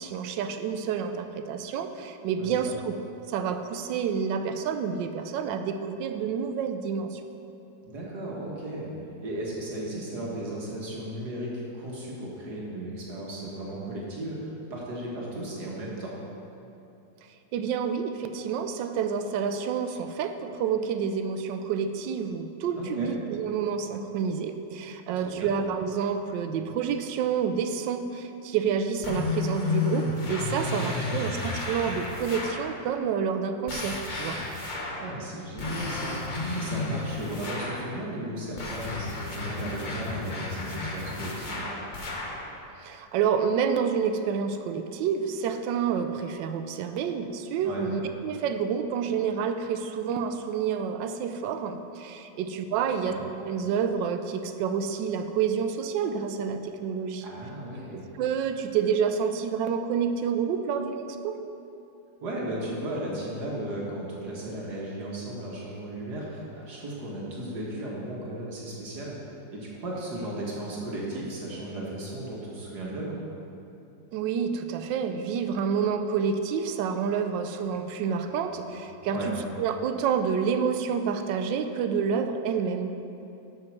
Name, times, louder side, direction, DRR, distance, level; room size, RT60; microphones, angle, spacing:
voice 1, 0.0-2.9 3.3-7.2 17.5-34.4 42.8-53.1 53.5-57.3 57.9-61.4 74.1-83.0, right 6 dB, 85° right, 8 dB, 1.3 m, -29 dB
voice 2, 2.4-2.8 7.8-8.9 9.2-16.1 22.8-23.1 25.1-25.5 30.6-31.3 35.0-36.2 36.5-41.7 47.6-47.9 53.0-53.2 57.2-58.1 62.2-69.2 69.5-73.2 79.1-79.3, right 1 dB, 65° right, -4 dB, 1.9 m, -35 dB
sound 1, 29.0-32.7 33.7-35.1 35.6-37.9 38.6-42.4, left 3 dB, 35° left, 0.8 m, -32 dB
7.4 x 6.5 x 6.0 m, 2.8 s
omnidirectional pair, 1.9 m